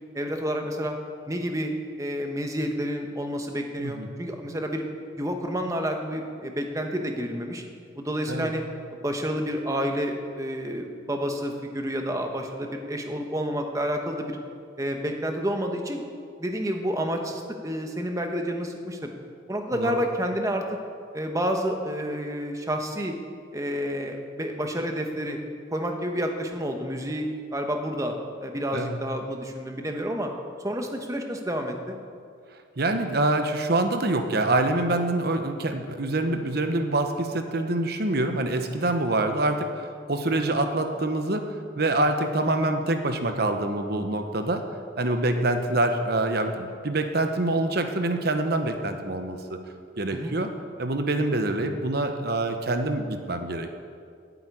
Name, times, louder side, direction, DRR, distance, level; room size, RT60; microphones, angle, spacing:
voice 1, 0.1-1.0 1.3-1.7 2.0-4.8 5.2-7.6 7.9-8.6 8.9-14.4 14.8-16.0 16.4-19.1 19.5-20.6 21.1-23.1 23.5-25.4 25.7-28.1 28.4-30.3 30.6-32.0 42.6-42.7 50.1-50.4, equal, 15° right, 3 dB, 1.1 m, -29 dB
voice 2, 32.8-41.5 41.8-44.6 45.0-49.6 50.0-50.5 50.8-53.7, right 2 dB, 55° right, 6 dB, 1.0 m, -25 dB
9.0 x 8.1 x 9.0 m, 2.2 s
head